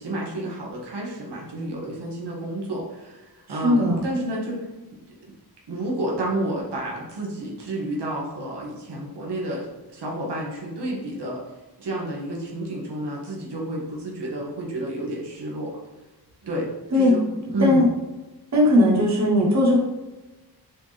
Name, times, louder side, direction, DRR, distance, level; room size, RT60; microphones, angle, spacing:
voice 1, 0.0-4.7 4.9-5.3 5.7-11.4 11.8-15.8 16.4-17.8, right 1 dB, 90° right, -3 dB, 1.8 m, -30 dB
voice 2, 3.6-4.1 16.9-17.2 17.6-17.9 18.5-19.8, left 1 dB, 45° right, -3 dB, 1.4 m, -18 dB
6.7 x 4.1 x 3.4 m, 1.1 s
wide cardioid pair, 115°, 39 cm